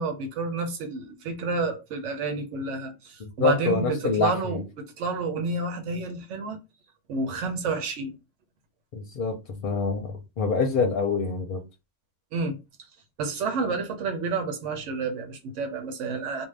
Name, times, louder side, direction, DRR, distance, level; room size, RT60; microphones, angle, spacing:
voice 1, 0.0-6.6 7.1-8.2 12.3-12.6 13.2-16.5, right 4 dB, 85° right, 1.1 m, -30 dB
voice 2, 3.2-4.6 8.9-11.6, left 4 dB, 55° left, 0.7 m, -26 dB
2.6 x 2.2 x 3.2 m
omnidirectional pair, 1.2 m